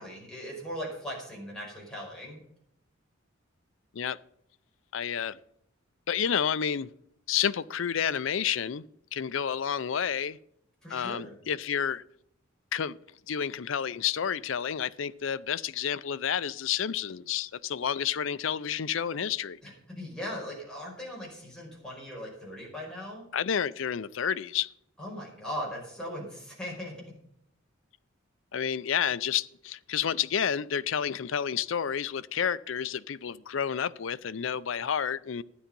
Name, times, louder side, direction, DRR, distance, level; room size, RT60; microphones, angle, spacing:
voice 1, 0.0-2.4 10.8-11.3 19.6-23.3 25.0-26.9, equal, 5° left, 5.1 m, -39 dB
voice 2, 4.9-5.4 6.1-6.9 7.3-8.8 9.1-10.4 10.9-12.0 12.7-13.0 13.3-19.6 23.3-24.7 28.5-35.4, left 8 dB, 70° left, 0.5 m, -30 dB
13.0 x 10.0 x 5.3 m
head